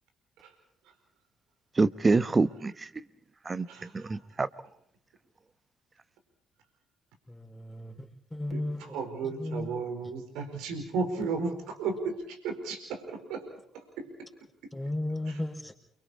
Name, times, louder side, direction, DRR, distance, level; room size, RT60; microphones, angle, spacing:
voice 1, 1.7-2.9 3.4-4.5, right 3 dB, 30° right, 1.1 m, -26 dB
voice 2, 3.7-4.4 8.5-13.5 13.7-14.3 14.6-14.7 15.3-15.4, right 4 dB, 70° right, 4.5 m, -35 dB
voice 3, 7.3-8.9 9.4-9.7 14.7-15.7, left 1 dB, 5° left, 5.2 m, -35 dB
29.5 x 24.5 x 4.3 m
hypercardioid pair, 45°, 0 cm